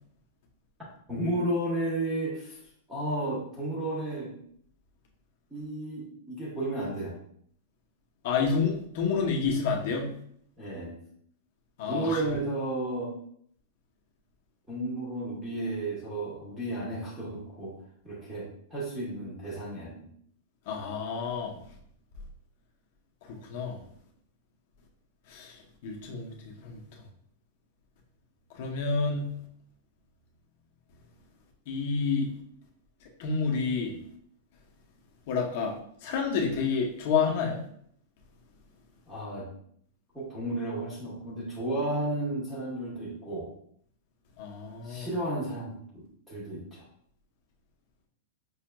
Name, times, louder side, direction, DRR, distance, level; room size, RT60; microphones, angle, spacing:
voice 1, 1.1-2.6 2.9-4.3 5.5-7.1 10.6-11.0 11.9-13.1 14.7-17.7 18.0-20.0 39.1-39.5 40.1-43.5 44.8-46.8, right 1 dB, 5° right, -7 dB, 0.9 m, -33 dB
voice 2, 8.2-10.1 11.8-12.2 20.7-21.5 23.3-23.8 25.3-25.5 25.8-26.8 28.6-29.3 31.7-32.3 33.2-33.9 35.3-35.7 36.0-37.6 44.4-45.1, left 5 dB, 40° left, 0 dB, 0.8 m, -29 dB
5.4 x 2.9 x 2.3 m, 0.65 s
supercardioid pair, 180°, 0 cm